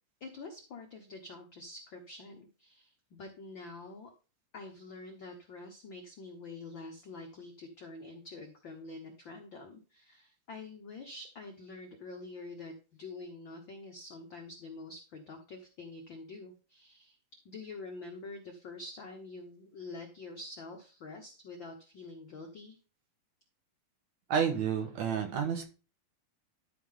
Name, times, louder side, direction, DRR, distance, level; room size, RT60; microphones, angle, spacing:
voice 1, 0.2-4.1 4.5-17.2 17.4-22.8, left 3 dB, 85° left, 2 dB, 1.0 m, -46 dB
voice 2, 24.3-25.6, right 7 dB, 65° right, 5 dB, 2.2 m, -30 dB
12.0 x 4.8 x 3.7 m, 0.33 s
omnidirectional pair, 3.9 m